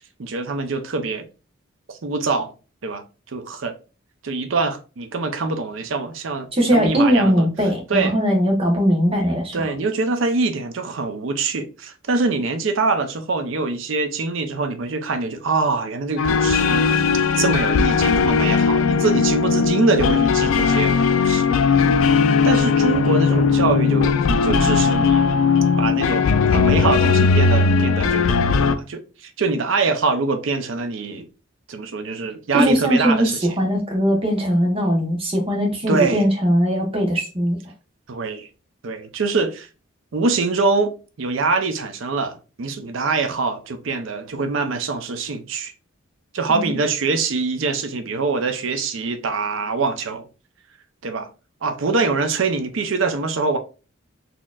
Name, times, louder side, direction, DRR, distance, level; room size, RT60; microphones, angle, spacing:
voice 1, 0.2-1.3 1.9-2.5 2.8-3.7 4.2-7.5 7.9-8.2 9.5-17.1 17.3-21.0 21.2-21.9 22.4-24.1 24.4-25.3 25.8-28.3 28.6-31.3 31.7-33.5 35.9-36.2 38.1-38.5 38.8-39.7 40.1-45.7 46.3-50.3 51.0-51.3 51.6-53.6, right 3 dB, 70° right, 0.5 m, -24 dB
voice 2, 6.6-9.5 32.5-37.6 46.5-46.7, equal, 25° right, 0.9 m, -19 dB
sound 1, 16.2-28.8, left 5 dB, 75° left, 0.3 m, -18 dB
4.1 x 2.8 x 2.3 m
head